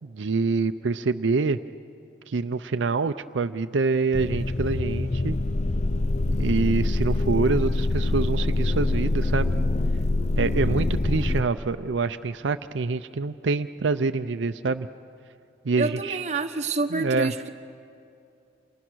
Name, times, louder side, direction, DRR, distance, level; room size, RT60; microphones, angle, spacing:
voice 1, 0.0-1.6 2.3-5.4 6.3-9.5 10.4-14.9 15.6-16.2 16.9-17.3, right 4 dB, 85° right, 9 dB, 0.5 m, -26 dB
sound 1, 4.1-11.4, left 2 dB, 40° left, 0.6 m, -25 dB
voice 2, 10.3-10.9 15.8-17.5, right 3 dB, 40° right, 5 dB, 1.1 m, -29 dB
30.0 x 27.5 x 6.2 m, 2.6 s
head